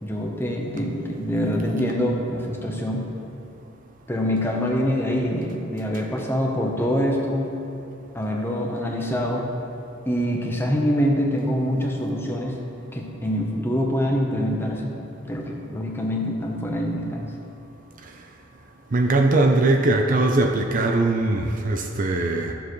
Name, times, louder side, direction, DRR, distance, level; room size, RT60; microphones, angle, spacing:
voice 1, 0.0-3.0 4.1-7.5 8.1-9.5 10.1-12.5 12.9-14.9 15.3-17.3, equal, 10° left, -1 dB, 0.9 m, -25 dB
voice 2, 18.9-22.5, right 2 dB, 40° right, 3 dB, 0.5 m, -20 dB
13.5 x 7.0 x 3.2 m, 2.7 s
head